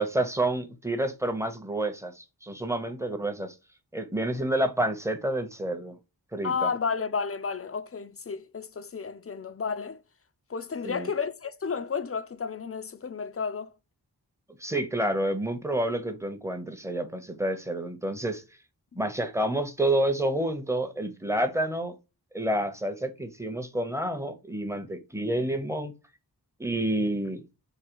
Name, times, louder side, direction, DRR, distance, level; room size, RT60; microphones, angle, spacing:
voice 1, 0.0-3.5 3.9-6.0 6.3-6.7 10.8-11.1 14.6-18.4 18.9-21.9 22.3-25.9 26.6-27.4, right 1 dB, 5° right, 0.8 m, -29 dB
voice 2, 6.4-10.0 10.5-13.7, left 5 dB, 35° left, 0.4 m, -32 dB
3.8 x 2.7 x 4.5 m
wide cardioid pair, 45°, 40 cm